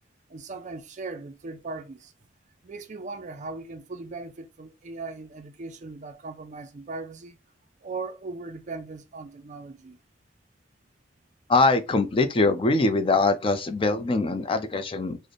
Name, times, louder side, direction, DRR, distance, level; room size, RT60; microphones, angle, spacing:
voice 1, 0.3-2.1 2.6-7.4 7.8-10.0, right 3 dB, 40° right, 0.5 m, -38 dB
voice 2, 11.5-15.2, left 3 dB, 30° left, 0.4 m, -22 dB
3.2 x 2.1 x 3.9 m
head